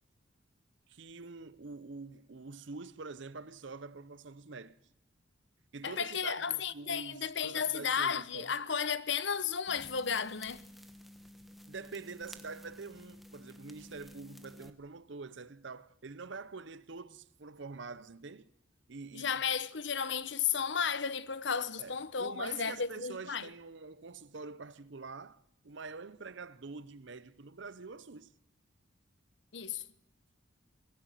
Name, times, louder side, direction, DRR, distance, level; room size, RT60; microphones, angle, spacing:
voice 1, 0.9-4.8 5.7-8.5 11.7-18.5 18.9-19.4 21.8-28.3, right 4 dB, 65° right, 0.8 m, -46 dB
voice 2, 5.8-10.6 19.1-23.5 29.5-29.8, left 6 dB, 60° left, 0.9 m, -33 dB
sound 1, 9.7-14.7, left 1 dB, ahead, 1.2 m, -53 dB
23.0 x 16.5 x 9.2 m
head